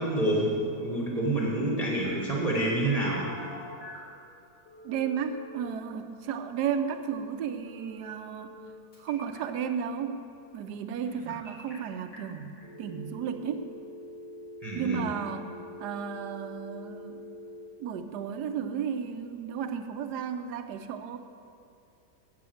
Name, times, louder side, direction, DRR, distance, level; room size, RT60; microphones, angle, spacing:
voice 1, 0.0-3.3 14.6-15.1, right 1 dB, 25° right, -5 dB, 1.1 m, -28 dB
Telephone, 2.0-4.1 4.6-5.7 7.7-8.7 8.9-9.4 11.0-11.7 12.1-12.2 12.6-17.6, left 1 dB, 80° left, 3.6 m, -45 dB
voice 2, 4.8-8.5 9.0-10.2 10.5-13.7 14.7-17.2 17.8-21.2, right 7 dB, 75° right, 8 dB, 1.2 m, -33 dB
8.4 x 7.1 x 7.7 m, 2.6 s
omnidirectional pair, 1.8 m